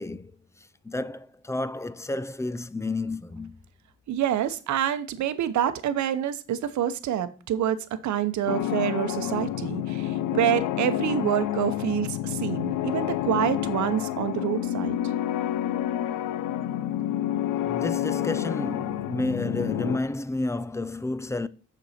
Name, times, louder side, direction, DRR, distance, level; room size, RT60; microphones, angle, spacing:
voice 1, 0.0-3.5 17.6-21.5, left 2 dB, 10° left, 0.4 m, -31 dB
voice 2, 4.1-15.0, right 10 dB, 70° right, 0.8 m, -27 dB
sound 1, 8.5-20.0, left 12 dB, 85° left, 0.6 m, -29 dB
6.8 x 6.3 x 4.3 m
cardioid pair, 90°, 30 cm